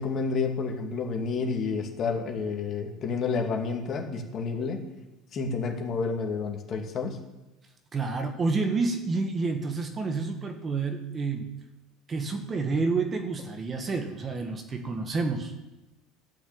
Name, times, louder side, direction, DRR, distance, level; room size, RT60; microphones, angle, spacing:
voice 1, 0.0-4.8 5.3-7.2, left 4 dB, 40° left, 3 dB, 2.4 m, -30 dB
voice 2, 7.9-11.6 12.1-15.5, right 4 dB, 30° right, 6 dB, 1.7 m, -29 dB
13.0 x 6.2 x 8.8 m, 1.0 s
supercardioid pair, 105°, 0 cm